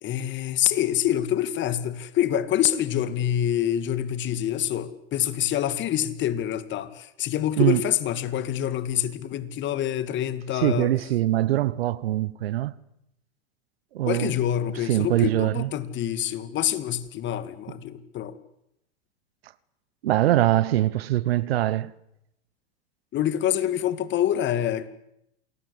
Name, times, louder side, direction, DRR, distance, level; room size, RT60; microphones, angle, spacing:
voice 1, 0.0-10.9 14.1-18.3 23.1-24.9, left 11 dB, 35° left, 2.3 m, -26 dB
voice 2, 10.5-12.7 13.9-14.3 14.8-15.7 20.0-21.9, right 14 dB, 70° right, 1.2 m, -23 dB
28.0 x 20.5 x 8.3 m
hypercardioid pair, 100°, 31 cm